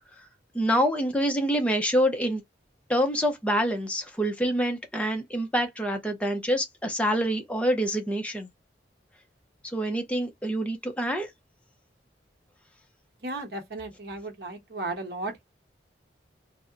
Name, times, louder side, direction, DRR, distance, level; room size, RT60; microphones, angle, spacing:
voice 1, 0.5-2.4 2.9-8.5 9.7-11.3, equal, 5° left, 0.5 m, -26 dB
voice 2, 13.2-15.4, right 2 dB, 60° right, 0.9 m, -35 dB
2.7 x 2.1 x 2.4 m
head